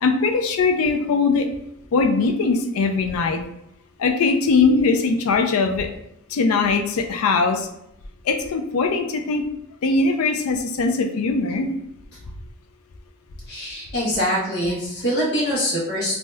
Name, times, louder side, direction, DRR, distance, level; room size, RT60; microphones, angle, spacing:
voice 1, 0.0-1.5 1.9-3.4 4.0-5.9 6.3-7.7 8.3-9.4 9.8-11.7, left 4 dB, 75° left, 4 dB, 0.4 m, -20 dB
voice 2, 13.5-16.2, equal, 50° left, -6 dB, 1.1 m, -24 dB
2.7 x 2.1 x 3.3 m, 0.79 s
head